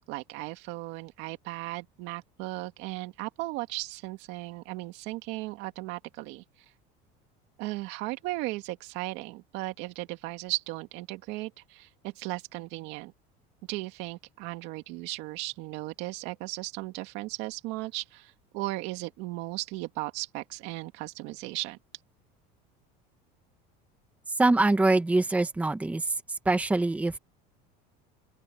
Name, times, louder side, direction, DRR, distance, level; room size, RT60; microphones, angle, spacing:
voice 1, 0.1-6.4 7.6-13.1 13.7-21.8, right 20 dB, 65° right, 2.3 m, -36 dB
voice 2, 24.3-27.2, right 2 dB, 5° right, 1.4 m, -24 dB
open air
cardioid pair, 150°, 19 cm